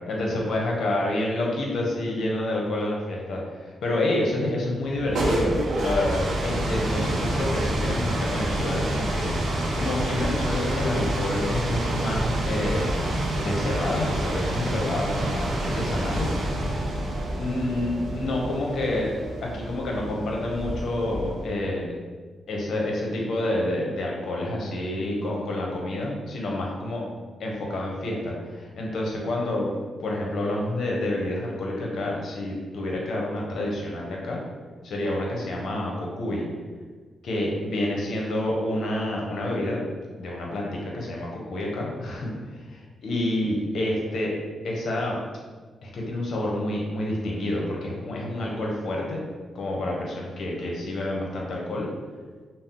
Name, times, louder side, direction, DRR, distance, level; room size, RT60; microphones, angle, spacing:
voice 1, 0.1-5.5 5.8-9.3 9.8-16.3 17.3-21.9 22.5-27.0 27.4-29.7 30.0-34.4 34.8-36.5 37.2-39.9 40.2-44.3 44.6-45.2 45.8-49.2 49.5-51.9, left 1 dB, 70° left, -2 dB, 0.7 m, -28 dB
sound 1, 4.8-21.6, right 1 dB, 75° right, 0.6 m, -28 dB
2.7 x 2.0 x 3.6 m, 1.4 s
cardioid pair, 75°, 0 cm